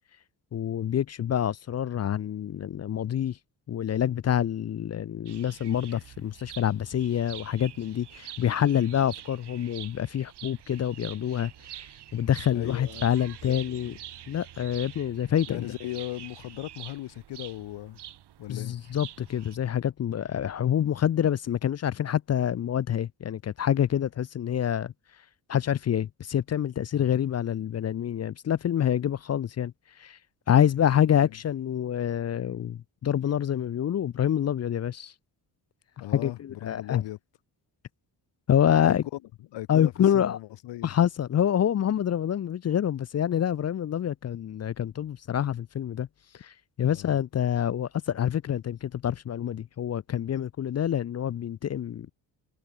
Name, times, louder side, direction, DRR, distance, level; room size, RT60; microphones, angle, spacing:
voice 1, 0.5-3.4 3.7-11.5 12.1-13.9 14.3-15.7 18.5-24.9 25.5-30.2 30.5-35.1 36.1-37.0 38.5-39.0 39.7-40.4 40.8-46.1 46.4-52.1, left 10 dB, 40° left, 0.5 m, -27 dB
sound 1, 5.3-19.6, right 11 dB, 65° right, 2.0 m, -46 dB
voice 2, 12.5-13.1 13.4-14.0 15.5-18.0 18.4-18.8 26.9-27.1 31.1-31.4 36.0-37.2 38.8-39.0 39.5-40.9 46.9-47.2, left 15 dB, 75° left, 0.9 m, -38 dB
cardioid pair, 120°, 43 cm